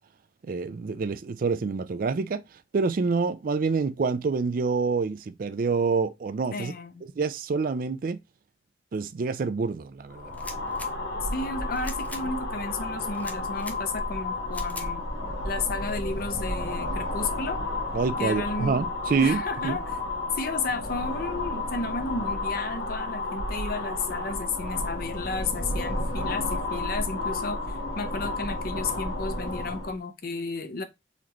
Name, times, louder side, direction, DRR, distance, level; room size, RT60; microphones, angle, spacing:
voice 1, 0.4-2.4 2.7-6.7 7.0-8.2 8.9-10.3 17.9-19.8, right 4 dB, 50° right, 0.4 m, -27 dB
voice 2, 6.5-7.0 11.3-15.0 15.4-17.6 18.2-18.8 19.2-19.9 20.4-30.8, left 3 dB, 55° left, 0.6 m, -33 dB
sound 1, 10.1-30.0, left 2 dB, 80° left, 1.0 m, -32 dB
sound 2, 10.3-10.9 11.7-12.2 13.1-13.8 14.5-14.9, left 2 dB, 10° left, 0.5 m, -41 dB
4.1 x 3.2 x 2.8 m
head